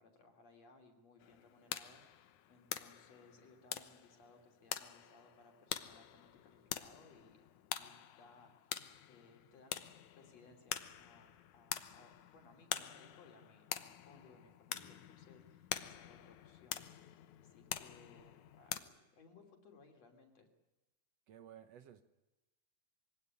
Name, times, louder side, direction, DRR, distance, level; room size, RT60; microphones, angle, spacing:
voice 1, 0.0-7.4 7.8-8.8 9.0-9.8 10.1-20.5, left 3 dB, 60° left, 4 dB, 4.3 m, -63 dB
sound 1, 1.2-18.8, left 11 dB, 80° left, 2.5 m, -46 dB
voice 2, 21.3-22.0, right 10 dB, 65° right, 10 dB, 2.0 m, -55 dB
23.5 x 17.0 x 9.8 m, 1.1 s
omnidirectional pair, 3.5 m